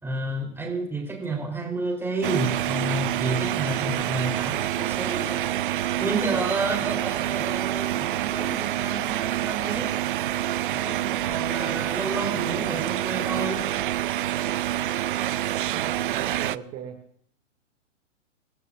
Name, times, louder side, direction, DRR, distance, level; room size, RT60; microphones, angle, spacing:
voice 1, 0.0-5.4 6.0-9.9 10.7-13.7, right 2 dB, 5° right, 1 dB, 3.6 m, -30 dB
sound 1, 2.2-16.6, right 13 dB, 45° right, 0.4 m, -27 dB
voice 2, 15.6-17.0, right 8 dB, 30° right, 2 dB, 2.2 m, -38 dB
26.5 x 15.0 x 2.5 m, 0.67 s
hypercardioid pair, 130°, 38 cm